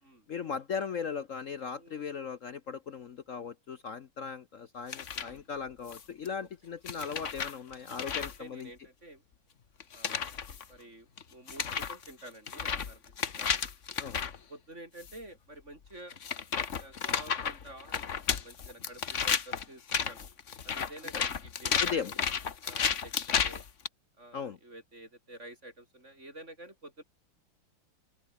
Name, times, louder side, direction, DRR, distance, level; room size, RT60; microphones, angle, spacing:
voice 1, 0.3-8.7 10.0-10.2 14.0-14.2 21.1-21.2 21.8-22.1 24.3-24.6, left 6 dB, 60° left, 0.8 m, -38 dB
voice 2, 1.7-2.0 5.1-5.5 6.4-6.5 7.9-9.2 9.9-10.4 10.7-13.0 13.4-13.6 14.5-16.2 16.7-20.2 20.6-22.2 22.6-23.1 23.4-23.6 24.2-27.0, right 1 dB, 30° right, 8.1 m, -50 dB
sound 1, 4.9-5.3 5.9-6.3 6.9-8.4 9.8-10.6 11.2-11.3 11.5-14.4 15.0-15.2 16.1-23.9, left 7 dB, 40° left, 1.3 m, -33 dB
open air
omnidirectional pair, 2.3 m